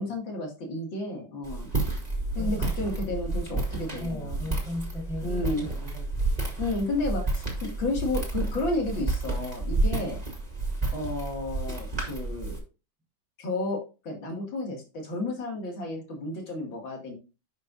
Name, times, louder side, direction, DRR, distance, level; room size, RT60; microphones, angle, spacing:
voice 1, 0.0-1.7 2.3-4.4 5.2-5.6 6.6-10.2 10.9-12.6 13.4-17.2, left 2 dB, 75° left, 2.9 m, -32 dB
Walk footsteps, 1.4-12.6, right 2 dB, 20° right, 2.2 m, -30 dB
voice 2, 2.3-2.9 3.9-6.6, left 1 dB, ahead, 3.9 m, -38 dB
11.0 x 5.6 x 2.5 m
omnidirectional pair, 2.1 m